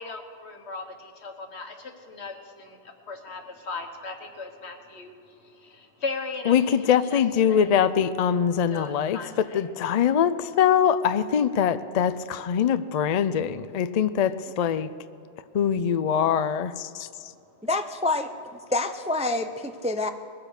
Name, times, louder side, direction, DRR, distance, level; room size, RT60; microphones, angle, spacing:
voice 1, 0.0-6.7 7.1-7.2 7.5-7.7 8.7-9.6, left 3 dB, 85° left, 5 dB, 1.6 m, -38 dB
voice 2, 6.5-14.9 15.5-17.1, left 8 dB, 50° left, 13 dB, 0.5 m, -23 dB
voice 3, 17.6-18.3 18.7-20.1, left 2 dB, 10° right, 8 dB, 0.3 m, -27 dB
21.0 x 7.6 x 6.5 m, 2.5 s
omnidirectional pair, 1.1 m